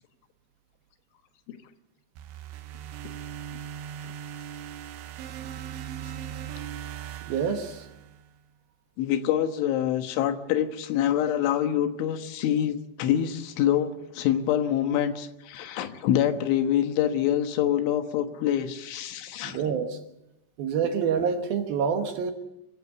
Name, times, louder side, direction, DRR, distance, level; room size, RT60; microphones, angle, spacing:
sound 1, 2.2-8.3, right 9 dB, 80° right, 3.4 m, -39 dB
voice 1, 7.2-7.9 19.4-20.0 20.6-22.3, right 6 dB, 65° right, 5 dB, 2.7 m, -27 dB
voice 2, 9.0-19.7 20.8-20.9, left 10 dB, 90° left, 8 dB, 3.8 m, -26 dB
26.5 x 15.5 x 6.9 m, 0.91 s
omnidirectional pair, 5.3 m